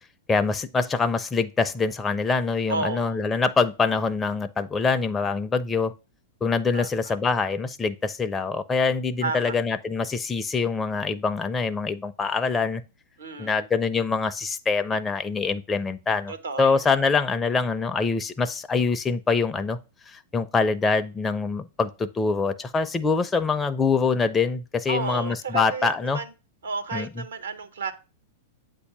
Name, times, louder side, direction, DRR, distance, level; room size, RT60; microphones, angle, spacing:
voice 1, 0.3-5.9 6.4-12.8 13.4-16.3 16.6-19.8 20.1-26.2 26.9-27.1, left 4 dB, 15° left, 0.4 m, -24 dB
voice 2, 2.7-3.2 6.7-7.1 9.2-9.6 13.2-13.6 16.3-16.9 24.9-26.3 26.6-27.9, right 4 dB, 80° right, 0.9 m, -32 dB
8.1 x 2.7 x 5.8 m
hypercardioid pair, 105°, 0 cm